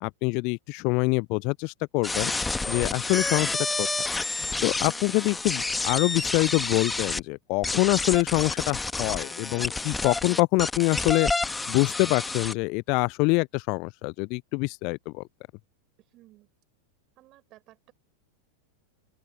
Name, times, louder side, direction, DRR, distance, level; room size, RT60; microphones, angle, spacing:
voice 1, 0.0-2.3 2.7-3.9 4.6-11.3 11.7-15.2, left 30 dB, 45° left, 0.3 m, -25 dB
sound 1, 2.0-7.2 7.6-12.5, left 3 dB, 10° left, 1.7 m, -29 dB
voice 2, 16.1-16.5 17.2-17.9, right 17 dB, 35° right, 5.3 m, -56 dB
open air
figure-of-eight pair, 90°, 0 cm